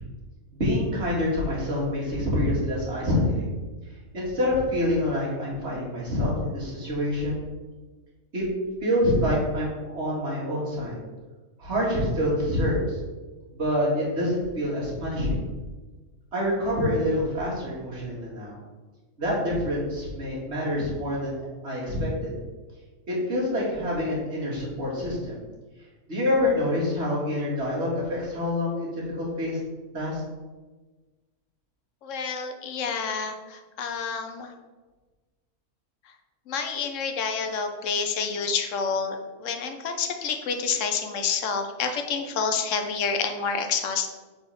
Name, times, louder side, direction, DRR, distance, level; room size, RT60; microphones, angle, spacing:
voice 1, 0.5-3.5 4.1-7.4 8.3-8.4 8.8-11.0 11.6-13.0 13.5-15.4 16.3-18.6 19.2-21.3 21.6-22.4 23.1-25.4 26.1-29.6 29.9-30.2, left 1 dB, 45° right, -6 dB, 2.2 m, -26 dB
voice 2, 32.0-34.5 36.0-36.1 36.5-44.1, left 5 dB, 65° left, 6 dB, 1.0 m, -28 dB
4.2 x 4.2 x 5.5 m, 1.3 s
omnidirectional pair, 1.6 m